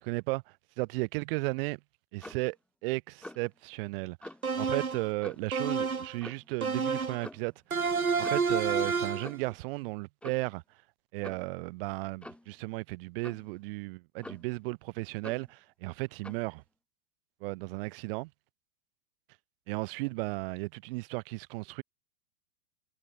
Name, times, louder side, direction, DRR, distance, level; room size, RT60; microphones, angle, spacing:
voice 1, 0.1-1.8 2.1-2.6 2.8-4.3 4.6-7.5 8.2-10.8 11.1-16.6 17.4-18.3 19.7-21.8, right 25 dB, 40° right, 2.2 m, -35 dB
Clock, 2.2-2.5 3.2-3.5 4.2-4.4 5.2-5.5 6.2-6.5 7.2-7.5 8.2-8.5 9.2-9.6 10.2-10.5 11.2-11.5 12.2-12.5 13.2-13.5 14.2-14.6 15.2-15.5 16.2-16.5, left 1 dB, 5° left, 2.3 m, -46 dB
sound 1, 4.4-5.1 5.5-6.2 6.6-7.3 7.7-9.3, right 5 dB, 80° right, 1.4 m, -29 dB
figure-of-eight pair, 100°, 42 cm